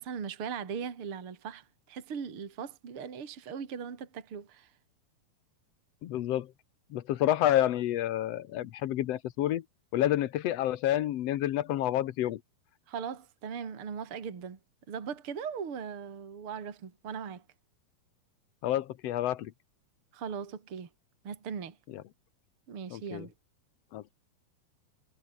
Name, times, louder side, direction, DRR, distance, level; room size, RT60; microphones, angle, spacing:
voice 1, 0.0-4.7 12.9-14.6 14.9-17.4 20.1-20.9 21.2-21.8 22.7-23.3, right 6 dB, 40° right, 3.3 m, -39 dB
voice 2, 6.0-6.5 6.9-9.6 9.9-12.4 18.6-19.5 21.9-22.0 22.9-23.3 23.9-24.1, left 13 dB, 90° left, 1.4 m, -29 dB
omnidirectional pair, 4.4 m